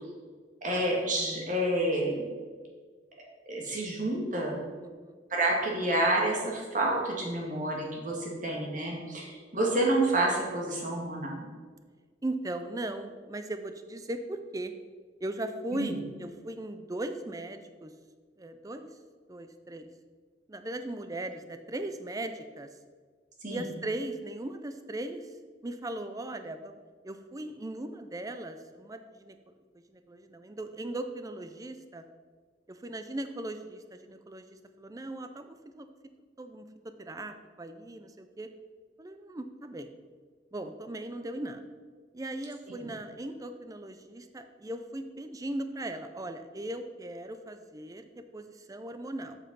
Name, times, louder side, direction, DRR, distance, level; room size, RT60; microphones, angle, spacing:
voice 1, 0.6-2.2 3.5-4.6 5.3-11.5 15.7-16.0 23.4-23.6 42.8-42.9, right 1 dB, 45° right, -2 dB, 2.0 m, -29 dB
voice 2, 4.8-5.2 12.2-14.7 15.2-17.9 18.4-18.9 19.3-19.9 20.5-22.7 23.5-25.3 25.6-26.8 27.0-29.4 29.9-32.0 32.7-35.9 36.4-36.7 37.0-38.5 39.0-39.9 40.5-41.6 42.1-49.4, right 1 dB, 20° right, 9 dB, 0.5 m, -38 dB
7.6 x 5.5 x 5.4 m, 1.6 s
head